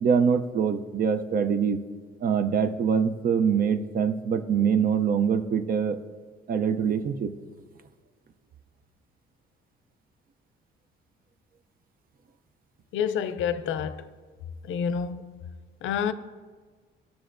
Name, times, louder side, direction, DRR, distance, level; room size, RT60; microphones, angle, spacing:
voice 1, 0.0-1.8 2.2-6.0 6.5-7.3, right 7 dB, 45° right, 0.5 m, -24 dB
voice 2, 12.9-14.0 14.7-15.2 15.8-16.1, left 7 dB, 80° left, 0.4 m, -28 dB
12.5 x 6.9 x 2.5 m
cardioid pair, 90°, 20 cm